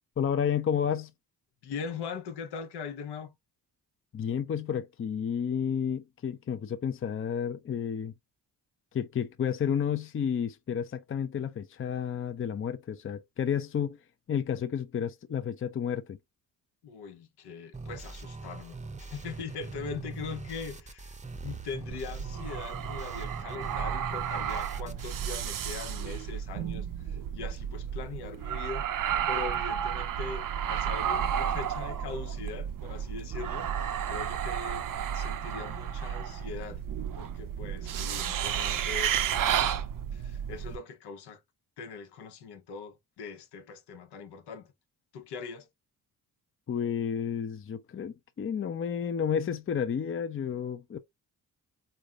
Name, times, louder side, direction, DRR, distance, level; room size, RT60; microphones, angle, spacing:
voice 1, 0.2-1.1 4.1-8.1 8.9-14.0 14.3-16.2 46.7-51.0, left 8 dB, 30° left, 0.6 m, -31 dB
voice 2, 1.6-3.4 16.8-28.9 29.3-33.7 34.1-34.9 35.1-36.8 37.1-39.1 40.1-41.4 41.8-44.7 45.1-45.7, left 5 dB, 75° left, 1.0 m, -41 dB
sound 1, 17.7-25.7, right 3 dB, 20° right, 0.7 m, -42 dB
sound 2, 21.9-40.8, right 9 dB, 55° right, 0.7 m, -32 dB
3.9 x 3.4 x 2.4 m
supercardioid pair, 60°, 40 cm